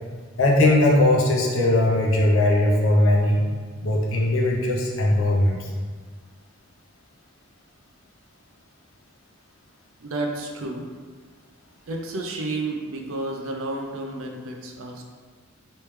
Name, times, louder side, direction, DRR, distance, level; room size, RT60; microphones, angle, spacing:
voice 1, 0.4-3.4 3.8-5.7, left 1 dB, 80° left, -2 dB, 0.7 m, -19 dB
voice 2, 10.0-10.8 11.9-15.0, right 2 dB, 85° right, 2 dB, 0.5 m, -31 dB
3.2 x 3.1 x 3.1 m, 1.6 s
head